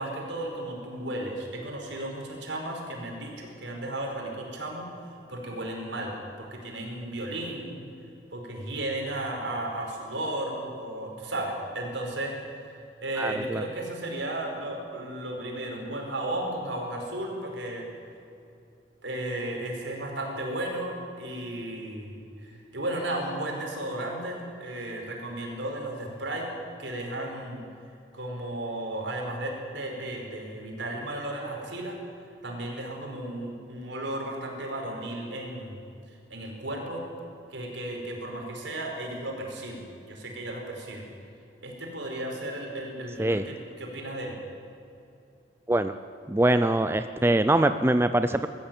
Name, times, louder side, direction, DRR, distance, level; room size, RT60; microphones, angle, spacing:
voice 1, 0.0-4.9 5.3-7.8 8.3-12.7 13.0-17.8 19.0-26.5 26.8-27.6 28.1-32.0 32.4-35.8 36.1-37.0 37.5-41.1 41.6-44.4, right 1 dB, 75° right, 1 dB, 4.9 m, -34 dB
voice 2, 13.2-13.6 43.2-43.4 45.7-46.0 46.3-48.5, right 1 dB, 15° right, 10 dB, 0.5 m, -23 dB
21.5 x 14.5 x 9.0 m, 2.7 s
head